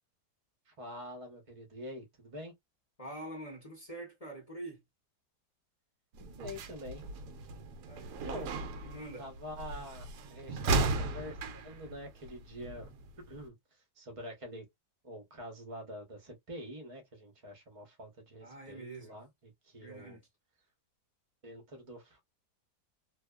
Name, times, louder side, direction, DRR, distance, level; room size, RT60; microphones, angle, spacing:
voice 1, 0.7-2.5 6.2-7.1 8.2-8.5 9.2-11.4 11.6-12.9 13.3-13.6 14.0-14.7 15.0-20.2 21.4-22.2, equal, 30° right, 0.7 m, -46 dB
voice 2, 3.0-4.8 7.7-8.5 8.8-9.3 18.4-19.1 19.8-20.2, right 1 dB, 30° left, 0.8 m, -45 dB
sound 1, 6.1-13.5, right 3 dB, 75° right, 1.1 m, -36 dB
2.7 x 2.3 x 2.2 m
omnidirectional pair, 1.8 m